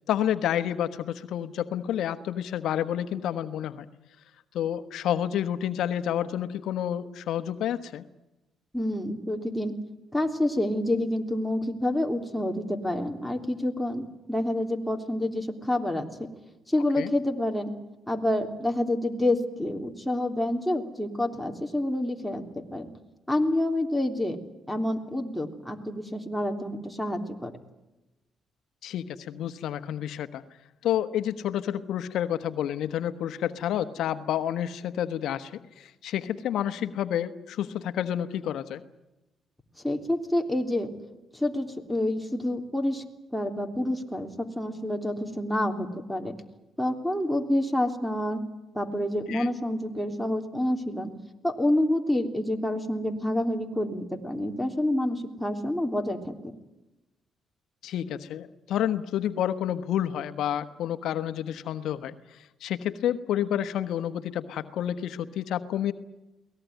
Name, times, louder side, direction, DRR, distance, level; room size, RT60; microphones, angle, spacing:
voice 1, 0.1-3.9 4.5-8.0 17.0-17.1 28.8-30.4 30.8-38.8 49.3-49.5 57.8-65.9, left 10 dB, 80° left, 10 dB, 1.2 m, -29 dB
voice 2, 8.7-9.7 10.1-16.3 16.7-17.7 18.1-22.9 23.3-24.4 24.7-27.5 39.8-40.9 41.3-43.0 43.3-46.3 46.8-48.4 48.7-51.1 51.4-56.5, left 1 dB, 5° left, 3 dB, 3.3 m, -28 dB
23.5 x 18.5 x 9.4 m, 1.0 s
cardioid pair, 90°, 0 cm